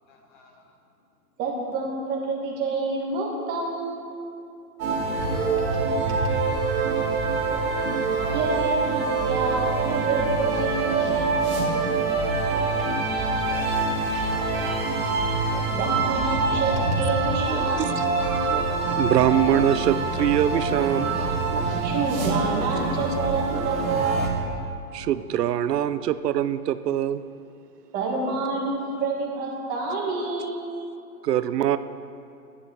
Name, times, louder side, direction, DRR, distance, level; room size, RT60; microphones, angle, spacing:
voice 1, 0.1-0.7 5.2-7.0 7.3-7.9 12.3-12.8, left 4 dB, 30° left, 3 dB, 1.0 m, -51 dB
voice 2, 1.4-4.0 8.3-11.4 15.7-18.2 21.8-24.3 27.9-30.6, right 3 dB, 20° right, -2 dB, 1.5 m, -28 dB
sound 1, 4.8-24.3, right 3 dB, 60° right, 2.5 m, -25 dB
voice 3, 19.0-21.2 24.9-27.2 31.2-31.8, right 11 dB, 85° right, 13 dB, 0.6 m, -23 dB
11.0 x 9.5 x 4.1 m, 2.7 s
hypercardioid pair, 150°, 47 cm